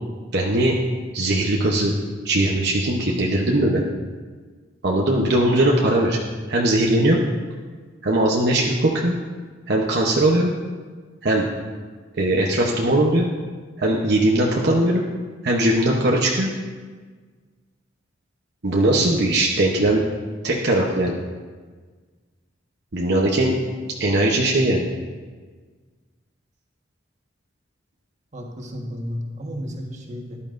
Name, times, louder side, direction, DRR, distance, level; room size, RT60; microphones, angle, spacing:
voice 1, 0.3-0.8 1.1-1.9 2.2-3.8 4.8-6.2 6.5-7.2 8.0-9.1 9.7-10.5 11.2-11.5 12.2-13.3 13.8-15.0 15.4-16.5 18.6-20.0 20.4-21.2 22.9-23.6 24.0-24.9, right 1 dB, 60° right, -2 dB, 0.9 m, -19 dB
voice 2, 28.3-30.4, equal, 40° right, 0 dB, 1.5 m, -32 dB
14.0 x 11.5 x 2.6 m, 1.5 s
head